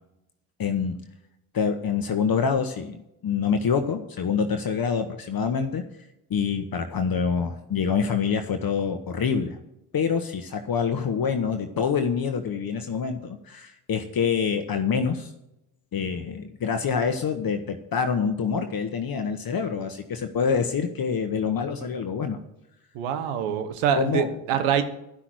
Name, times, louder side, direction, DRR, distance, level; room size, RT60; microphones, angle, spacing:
voice 1, 0.6-1.0 1.5-5.8 6.3-9.6 9.9-15.3 15.9-22.4 24.0-24.3, left 6 dB, 45° left, 7 dB, 1.1 m, -26 dB
voice 2, 22.9-24.8, right 8 dB, 80° right, 9 dB, 1.1 m, -25 dB
11.5 x 5.9 x 7.8 m, 0.86 s
hypercardioid pair, 45°, 50 cm